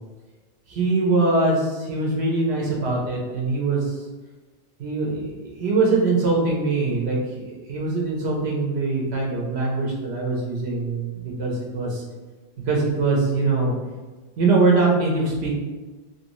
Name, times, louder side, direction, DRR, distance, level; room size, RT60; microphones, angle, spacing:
voice 1, 0.7-3.8 4.8-7.2 7.4-12.0 12.7-13.7 14.4-15.5, right 3 dB, 80° right, -2 dB, 0.9 m, -22 dB
3.0 x 2.6 x 3.0 m, 1.3 s
omnidirectional pair, 1.1 m